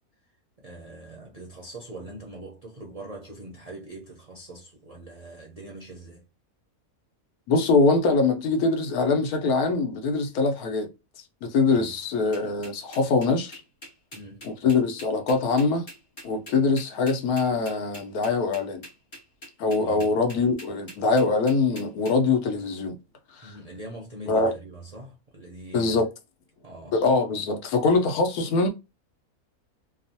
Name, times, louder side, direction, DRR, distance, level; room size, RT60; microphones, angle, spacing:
voice 1, 0.6-6.2 11.7-12.0 14.1-14.5 19.8-20.1 23.4-26.0 26.6-27.0, right 2 dB, 50° right, 0.4 m, -42 dB
voice 2, 7.5-10.9 11.4-13.6 14.4-15.9 16.2-18.8 19.6-23.0 23.4-23.6 24.3-24.5 25.7-26.1 26.9-28.7, left 4 dB, 90° left, 1.2 m, -23 dB
sound 1, 12.3-22.1, equal, 35° left, 1.1 m, -44 dB
2.9 x 2.0 x 2.6 m
omnidirectional pair, 1.5 m